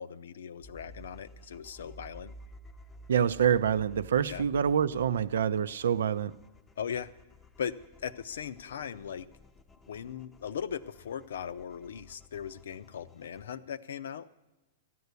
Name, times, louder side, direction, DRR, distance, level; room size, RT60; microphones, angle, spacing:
voice 1, 0.0-2.3 4.3-4.4 6.8-7.1 7.6-7.7 8.0-9.3 9.9-14.3, left 8 dB, 85° left, 0.6 m, -38 dB
sound 1, 0.6-13.5, equal, 10° left, 0.6 m, -54 dB
voice 2, 3.1-6.3, right 8 dB, 85° right, 0.5 m, -26 dB
14.0 x 9.4 x 8.2 m
hypercardioid pair, 150°, 0 cm